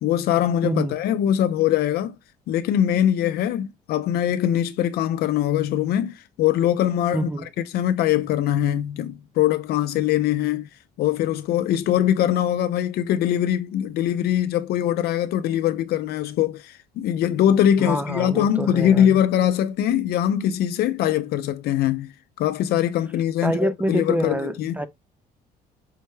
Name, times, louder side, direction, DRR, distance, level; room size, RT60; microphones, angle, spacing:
voice 1, 0.0-2.2 2.5-7.3 7.6-10.7 11.0-22.1 22.4-24.8, left 11 dB, 70° left, 0.5 m, -22 dB
voice 2, 0.6-1.0 7.1-7.5 17.8-19.2 23.4-24.9, right 1 dB, 10° right, 0.3 m, -26 dB
5.5 x 2.2 x 3.1 m
cardioid pair, 110°, 17 cm